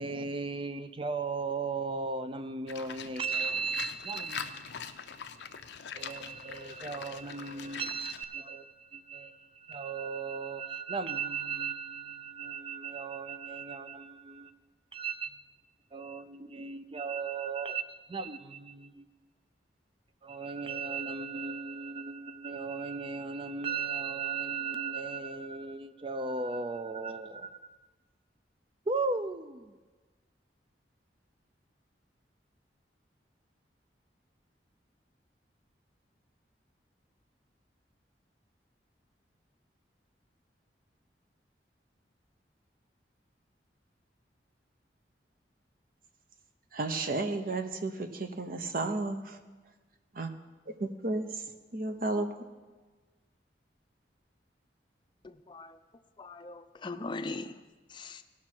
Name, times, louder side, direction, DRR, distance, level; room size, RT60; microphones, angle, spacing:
voice 1, 0.0-14.5 14.9-15.4 15.9-19.1 20.2-27.6 28.9-29.7, right 4 dB, 30° right, 0.5 m, -36 dB
Livestock farm animals working animals, 2.7-8.2, left 7 dB, 80° left, 0.5 m, -43 dB
voice 2, 46.7-49.4 50.1-50.3 50.7-51.4 51.7-52.3, right 2 dB, 55° right, 0.8 m, -33 dB
voice 3, 55.2-55.8 56.2-57.6 57.9-58.2, left 3 dB, 25° left, 0.5 m, -40 dB
17.0 x 6.1 x 4.5 m
head